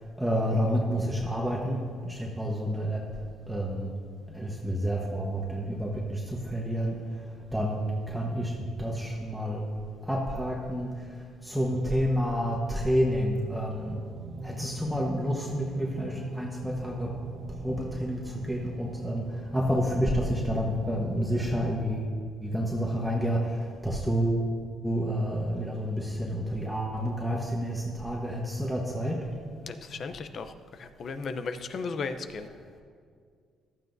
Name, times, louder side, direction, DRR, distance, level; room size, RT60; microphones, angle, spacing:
voice 1, 0.2-3.9 4.3-7.0 7.5-9.6 10.0-14.0 14.4-17.1 17.6-22.1 22.4-24.4 24.8-29.2, equal, ahead, -2 dB, 1.2 m, -29 dB
sound 1, 13.6-21.8, right 4 dB, 65° right, 0.8 m, -43 dB
voice 2, 29.6-32.5, left 4 dB, 50° left, 9 dB, 0.7 m, -36 dB
15.0 x 12.5 x 2.7 m, 2.1 s
cardioid pair, 105°, 0 cm